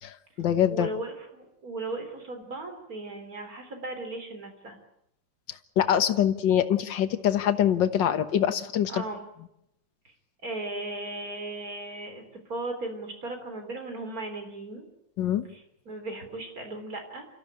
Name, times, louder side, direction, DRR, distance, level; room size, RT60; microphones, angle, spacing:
voice 1, 0.0-0.9 5.8-9.0 15.2-15.5, left 10 dB, 60° left, 10 dB, 1.9 m, -24 dB
voice 2, 0.7-4.8 8.9-9.2 10.4-12.2 12.5-14.9 15.5-15.6 15.9-17.3, right 2 dB, 40° right, 5 dB, 4.1 m, -36 dB
29.0 x 14.5 x 8.9 m, 0.80 s
omnidirectional pair, 2.3 m